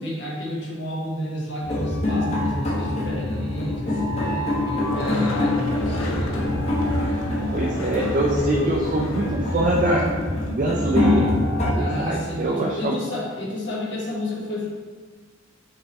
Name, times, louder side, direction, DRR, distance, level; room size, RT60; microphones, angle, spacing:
voice 1, 0.0-6.6 8.1-8.8 11.7-14.7, left 1 dB, 60° left, -3 dB, 1.1 m, -30 dB
sound 1, 1.6-11.7, left 1 dB, 35° left, 0.9 m, -25 dB
Skateboard, 4.9-10.5, left 1 dB, 85° left, 0.7 m, -34 dB
voice 2, 7.5-10.0 10.5-11.3 11.8-13.0, right 2 dB, 40° right, -2 dB, 0.4 m, -24 dB
5.3 x 3.2 x 2.9 m, 1.4 s
head